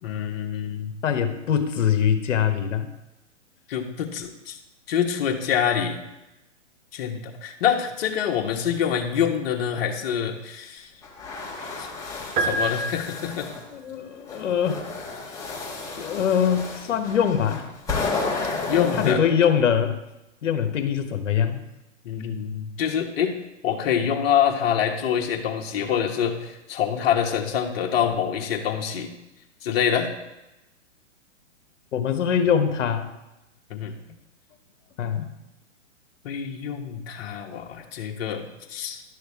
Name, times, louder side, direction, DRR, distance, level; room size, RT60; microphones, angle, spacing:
voice 1, 0.0-1.0 3.7-4.6 4.9-6.0 6.9-10.9 11.8-11.9 12.4-13.5 18.7-19.2 22.0-23.3 23.6-29.1 29.6-30.1 33.7-34.0 36.2-39.0, left 8 dB, 50° left, 1 dB, 1.4 m, -26 dB
voice 2, 1.0-2.9 11.6-11.7 13.6-14.8 16.0-17.6 19.0-20.0 20.4-21.6 31.9-33.1 35.0-35.3, left 8 dB, 70° left, 7 dB, 1.2 m, -23 dB
sound 1, 11.0-13.6 14.3-19.1, left 3 dB, 10° left, 1.5 m, -32 dB
sound 2, 12.4-13.7, right 2 dB, 20° right, 0.8 m, -27 dB
11.0 x 6.4 x 3.6 m, 0.97 s
hypercardioid pair, 135°, 38 cm